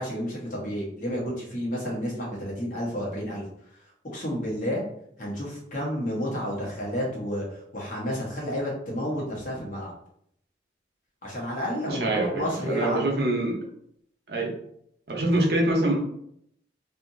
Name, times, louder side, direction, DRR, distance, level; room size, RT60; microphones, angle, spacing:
voice 1, 0.0-3.4 4.1-4.8 5.2-9.9 11.2-13.0, equal, 45° left, -4 dB, 1.0 m, -31 dB
voice 2, 11.9-13.6 14.3-14.5 15.1-16.0, right 1 dB, 55° right, 0 dB, 0.7 m, -25 dB
2.8 x 2.5 x 2.5 m, 0.71 s
head